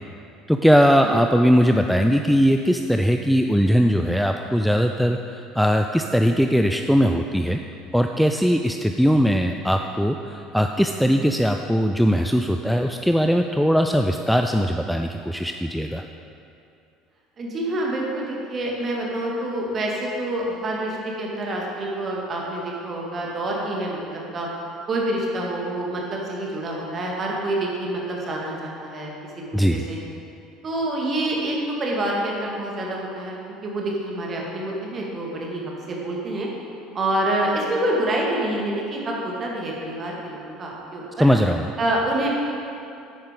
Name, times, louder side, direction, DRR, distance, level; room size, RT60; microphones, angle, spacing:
voice 1, 0.5-7.6 7.9-16.0 29.5-29.9 41.2-41.7, equal, ahead, 5 dB, 0.4 m, -20 dB
voice 2, 17.4-24.5 24.9-30.0 30.6-36.5 36.9-41.3 41.8-42.3, right 1 dB, 35° right, -2 dB, 1.9 m, -27 dB
10.5 x 8.7 x 3.7 m, 2.6 s
figure-of-eight pair, 65°, 0 cm